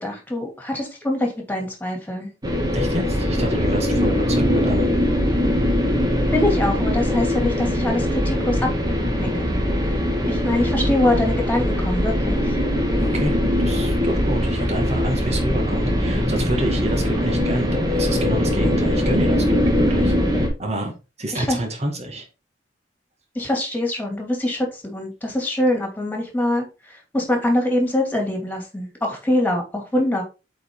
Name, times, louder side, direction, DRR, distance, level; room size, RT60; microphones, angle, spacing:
voice 1, 0.0-2.3 6.3-8.7 9.2-9.3 10.3-12.4 21.3-21.6 23.3-26.6 27.1-30.2, left 1 dB, 10° left, 2 dB, 2.6 m, -23 dB
sound 1, 2.4-20.5, equal, 20° right, 1.8 m, -21 dB
voice 2, 2.7-4.9 13.0-20.9 21.2-22.3, right 1 dB, 40° right, 3 dB, 2.1 m, -28 dB
8.1 x 4.7 x 3.8 m, 0.29 s
head